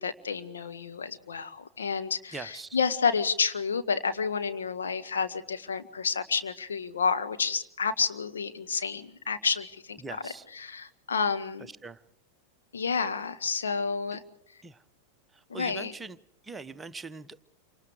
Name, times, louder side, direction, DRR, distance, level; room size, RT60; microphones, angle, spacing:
voice 1, 0.0-11.7 12.7-14.2 15.5-15.9, left 5 dB, 70° left, 7 dB, 1.6 m, -30 dB
voice 2, 2.3-2.8 10.0-10.4 11.8-12.0 14.6-14.8 15.5-16.2 16.4-17.4, right 4 dB, 10° right, 11 dB, 1.0 m, -41 dB
28.5 x 25.5 x 4.8 m, 0.70 s
figure-of-eight pair, 90°, 0 cm